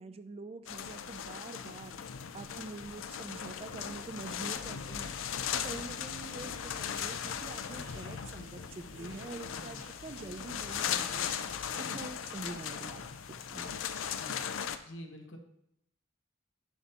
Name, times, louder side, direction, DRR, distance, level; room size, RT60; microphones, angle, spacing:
voice 1, 0.0-2.0 2.3-5.1 5.5-11.5 11.8-13.0 13.5-13.8, right 3 dB, 30° right, 11 dB, 0.3 m, -45 dB
sound 1, 0.7-14.8, left 8 dB, 85° left, 0.5 m, -38 dB
sound 2, 6.3-11.3, right 1 dB, 75° right, 1.1 m, -56 dB
voice 2, 14.8-15.4, equal, 70° left, 3 dB, 1.1 m, -47 dB
10.0 x 5.6 x 2.9 m, 0.77 s
head